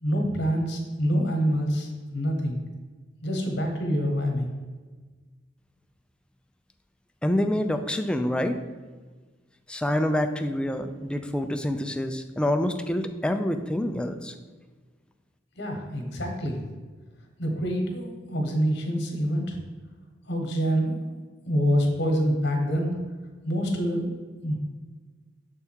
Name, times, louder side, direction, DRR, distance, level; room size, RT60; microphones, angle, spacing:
voice 1, 0.0-2.6 3.2-4.5 15.6-16.6 17.4-19.6 20.3-21.2 21.5-22.9 23.4-24.2 24.4-24.6, equal, 65° left, 2 dB, 1.2 m, -26 dB
voice 2, 7.2-8.6 9.7-14.3, left 1 dB, 5° left, 6 dB, 0.3 m, -27 dB
6.5 x 3.5 x 4.5 m, 1.4 s
head